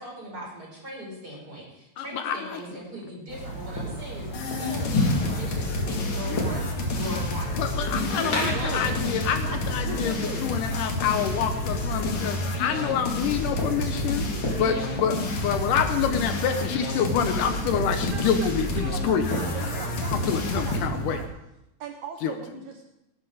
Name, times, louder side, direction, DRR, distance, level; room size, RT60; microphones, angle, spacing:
voice 1, 0.0-7.6 7.9-9.2, right 1 dB, 25° right, -2 dB, 5.3 m, -39 dB
voice 2, 2.0-2.6 7.6-14.3 14.6-19.3 20.1-21.2 22.2-22.3, left 7 dB, 75° left, 7 dB, 2.3 m, -27 dB
sound 1, 3.3-21.3, equal, 35° left, 3.4 m, -33 dB
sound 2, 4.3-20.9, left 3 dB, 55° left, 3.3 m, -30 dB
voice 3, 6.3-6.7 8.2-8.9 9.5-10.4 18.1-21.3 21.8-22.8, right 6 dB, 70° right, 4 dB, 2.1 m, -38 dB
18.5 x 10.5 x 5.0 m, 0.88 s
omnidirectional pair, 4.0 m